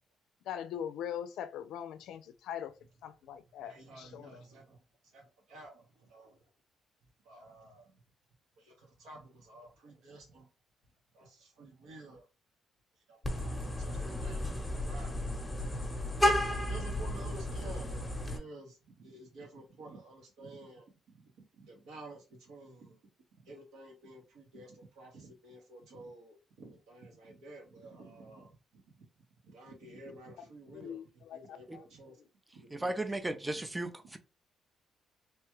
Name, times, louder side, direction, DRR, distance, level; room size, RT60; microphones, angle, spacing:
voice 1, 0.5-2.7 3.0-4.4 30.7-31.8, left 9 dB, 85° left, 0.4 m, -41 dB
voice 2, 3.6-4.8 5.1-5.2 5.5-6.4 7.2-8.0 8.6-10.5 11.1-12.3 13.1-14.5 14.8-15.1 15.4-16.1 16.6-23.0 23.4-29.0 29.4-31.0 31.3-32.2 32.5-33.0 34.0-34.1, right 1 dB, 85° right, 1.3 m, -52 dB
Vehicle horn car horn honking, 13.2-18.4, left 1 dB, 15° left, 0.9 m, -33 dB
voice 3, 32.7-34.2, right 1 dB, 15° right, 0.5 m, -35 dB
3.1 x 2.3 x 3.0 m
cardioid pair, 90°, 0 cm